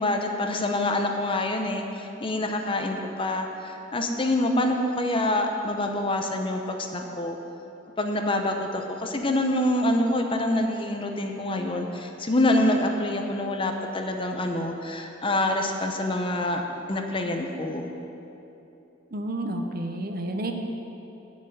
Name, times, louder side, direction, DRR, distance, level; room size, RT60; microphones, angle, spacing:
voice 1, 0.0-7.4 8.0-16.6 16.9-17.9, left 1 dB, 30° left, 3 dB, 0.8 m, -26 dB
voice 2, 19.1-20.5, right 1 dB, 50° right, 4 dB, 0.9 m, -30 dB
8.2 x 7.4 x 8.6 m, 2.9 s
head